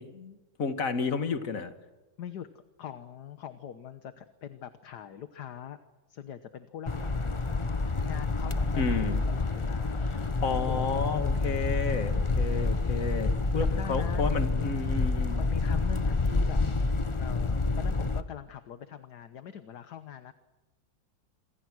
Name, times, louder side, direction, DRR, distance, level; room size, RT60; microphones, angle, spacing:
voice 1, 0.0-1.7 8.8-9.2 10.1-15.4, left 4 dB, 45° left, 8 dB, 2.2 m, -31 dB
voice 2, 2.8-5.8 6.1-7.7 8.0-10.2 10.7-11.0 12.0-12.6 13.6-14.8 15.3-16.6 17.2-20.3, left 9 dB, 60° left, 10 dB, 1.6 m, -43 dB
sound 1, 6.9-18.2, left 3 dB, 30° left, 0.6 m, -28 dB
28.0 x 25.0 x 6.3 m, 1.1 s
omnidirectional pair, 2.1 m